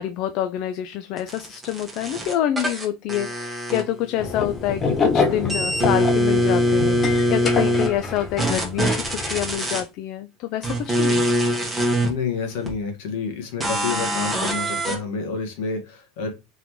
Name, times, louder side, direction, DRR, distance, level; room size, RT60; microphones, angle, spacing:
voice 1, 0.0-11.3, left 11 dB, 55° left, 0.4 m, -27 dB
sound 1, 1.2-4.3 4.6-7.9 8.4-9.8 10.6-12.1 12.7-12.8 13.6-15.0, equal, 5° right, 1.3 m, -23 dB
sound 2, 4.2-9.5, left 4 dB, 30° left, 0.8 m, -26 dB
voice 2, 12.0-16.3, left 5 dB, 75° left, 1.6 m, -29 dB
3.7 x 3.5 x 3.1 m
supercardioid pair, 130°, 0 cm